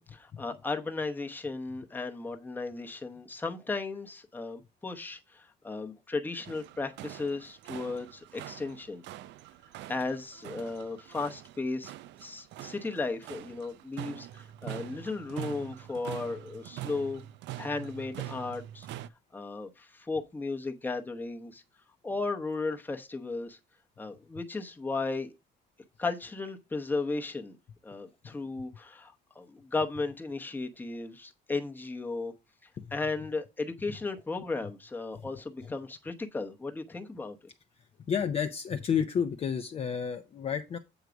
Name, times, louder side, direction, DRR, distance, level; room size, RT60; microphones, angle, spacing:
voice 1, 0.0-9.0 9.9-11.9 12.2-17.3 17.6-18.9 19.3-21.6 22.0-23.6 24.0-25.3 26.0-27.6 27.8-32.3 32.9-37.4, left 3 dB, 10° left, 0.9 m, -35 dB
sound 1, 6.4-19.1, right 14 dB, 70° right, 0.5 m, -44 dB
voice 2, 38.1-40.8, left 7 dB, 30° left, 0.6 m, -30 dB
8.1 x 4.6 x 5.0 m
cardioid pair, 160°, 19 cm